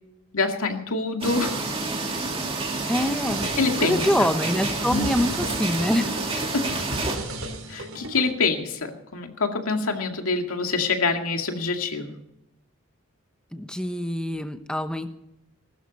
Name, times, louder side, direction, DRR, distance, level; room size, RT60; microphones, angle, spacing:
voice 1, 0.3-1.6 3.6-4.3 4.9-5.1 6.5-6.7 7.7-12.2, left 4 dB, 90° left, 4 dB, 2.2 m, -26 dB
sound 1, 1.2-7.2, right 3 dB, 25° right, 2.1 m, -29 dB
voice 2, 2.9-3.5 3.8-6.1 13.5-15.1, left 1 dB, 5° left, 8 dB, 0.9 m, -25 dB
sound 2, 3.3-8.3, right 1 dB, 80° right, 3.7 m, -36 dB
20.5 x 12.5 x 4.2 m, 0.84 s
head